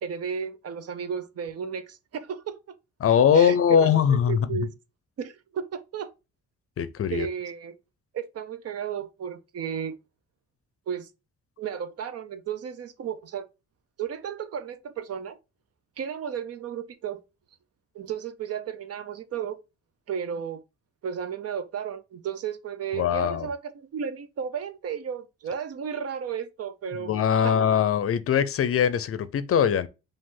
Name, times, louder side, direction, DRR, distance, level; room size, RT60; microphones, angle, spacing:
voice 1, 0.0-2.8 3.3-4.0 4.3-4.7 5.2-6.1 7.1-7.7 8.1-10.0 10.9-11.1 11.6-13.5 14.0-15.4 16.0-17.2 17.9-19.6 20.1-20.6 21.0-27.2 27.4-27.7, right 7 dB, 55° right, 0.6 m, -33 dB
voice 2, 3.0-4.7 6.8-7.3 22.9-23.5 27.0-29.9, left 8 dB, 50° left, 0.5 m, -22 dB
4.9 x 2.4 x 3.7 m
cardioid pair, 90°, 30 cm